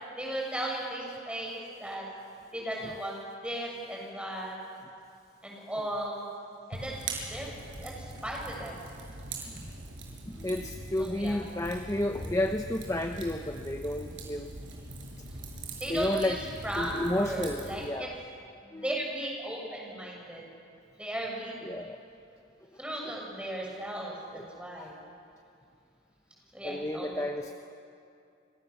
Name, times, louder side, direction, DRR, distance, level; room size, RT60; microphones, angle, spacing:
voice 1, 0.2-2.0 2.5-4.6 5.4-6.3 6.7-6.9 7.3-7.5 7.8-8.7 11.0-11.4 15.8-16.3 16.6-18.1 18.6-20.4 21.0-21.6 22.8-24.9 26.5-27.2, right 1 dB, 5° right, -2 dB, 6.7 m, -36 dB
Fire, 6.7-17.9, right 2 dB, 70° right, 6.7 m, -42 dB
voice 2, 10.2-14.5 15.9-16.4 16.8-18.1 18.7-18.8 21.6-22.0 23.0-23.1 24.3-24.4 24.8-24.9 26.6-27.5, left 1 dB, 15° left, 5 dB, 0.8 m, -32 dB
30.0 x 26.0 x 7.2 m, 2.5 s
head